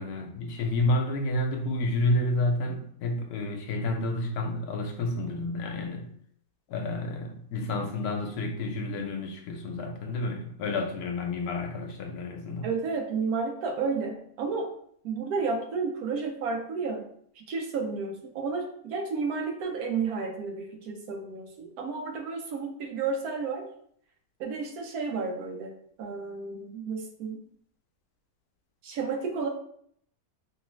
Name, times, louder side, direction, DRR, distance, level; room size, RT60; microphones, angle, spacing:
voice 1, 0.0-6.1 6.7-12.7, left 2 dB, 80° left, 4 dB, 1.1 m, -30 dB
voice 2, 12.6-14.7 15.0-17.1 17.4-23.7 24.4-25.7 26.0-27.4 28.8-29.5, right 4 dB, 80° right, 3 dB, 1.1 m, -32 dB
3.1 x 2.5 x 3.0 m, 0.64 s
omnidirectional pair, 1.6 m